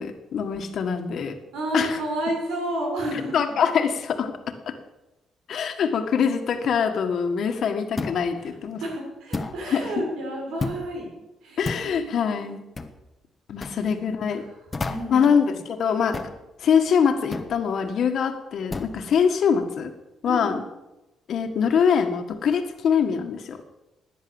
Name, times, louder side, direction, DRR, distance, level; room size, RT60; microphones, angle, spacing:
voice 1, 0.0-1.4 1.7-2.0 3.3-4.3 5.5-8.8 9.7-10.0 11.6-12.6 13.5-14.4 15.1-16.2 16.6-19.9 20.2-20.6 21.3-23.6, left 7 dB, 60° left, 6 dB, 1.8 m, -23 dB
voice 2, 1.5-3.7 8.8-11.1 11.4-12.1 13.7-13.8 14.9-15.6 20.2-20.6, right 1 dB, 90° right, 0 dB, 6.5 m, -31 dB
sound 1, 8.0-8.3 9.3-9.6 10.6-10.9 11.6-11.9 12.8-13.0 13.6-13.8 14.7-15.2 16.1-16.4 17.3-17.5 18.7-19.0, left 3 dB, 20° left, 1.2 m, -31 dB
17.5 x 10.0 x 7.2 m, 1.0 s
cardioid pair, 135°, 0 cm